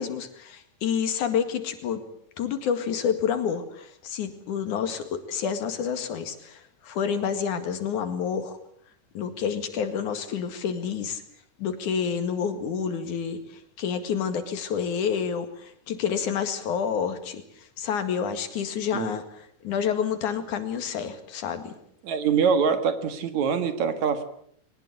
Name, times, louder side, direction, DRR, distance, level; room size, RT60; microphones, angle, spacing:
voice 1, 0.0-2.0 2.4-8.6 9.1-11.2 11.6-19.2 19.6-21.7, left 7 dB, 75° left, 9 dB, 3.5 m, -29 dB
voice 2, 22.0-24.2, right 6 dB, 65° right, 10 dB, 2.9 m, -24 dB
22.0 x 19.5 x 8.5 m, 0.67 s
omnidirectional pair, 3.6 m